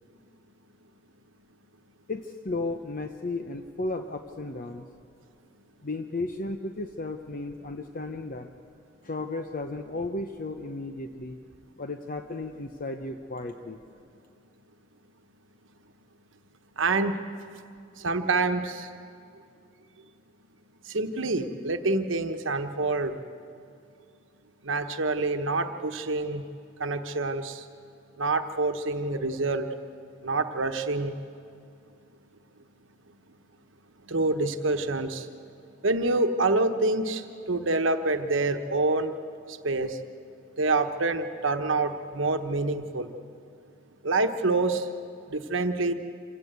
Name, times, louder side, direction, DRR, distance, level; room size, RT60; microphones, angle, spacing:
voice 1, 2.1-4.9 5.8-8.5 9.0-11.4 11.8-13.8, left 2 dB, 45° left, 6 dB, 0.8 m, -34 dB
voice 2, 16.8-17.2 18.0-18.9 20.9-23.2 24.6-26.4 26.8-27.7 28.2-29.7 30.2-31.1 34.1-35.3 35.8-39.1 39.5-40.0 40.6-43.1 44.0-44.9 45.3-45.9, right 3 dB, 85° right, 7 dB, 1.2 m, -27 dB
26.5 x 16.5 x 8.1 m, 2.4 s
head